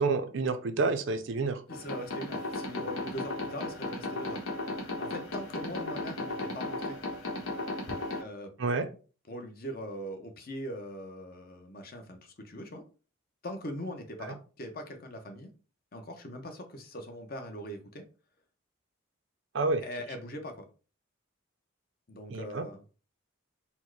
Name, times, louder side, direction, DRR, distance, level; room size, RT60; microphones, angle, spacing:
voice 1, 0.0-1.6 8.6-8.9 19.5-19.8 22.3-22.6, right 3 dB, 60° right, 9 dB, 0.5 m, -28 dB
sound 1, 1.7-8.2, left 2 dB, 90° left, 1.1 m, -35 dB
voice 2, 1.7-4.4 5.0-7.0 8.2-8.5 9.3-12.8 13.4-15.5 15.9-18.0 19.8-20.7 22.1-22.8, equal, 45° left, 5 dB, 0.8 m, -41 dB
4.3 x 2.1 x 4.6 m, 0.36 s
head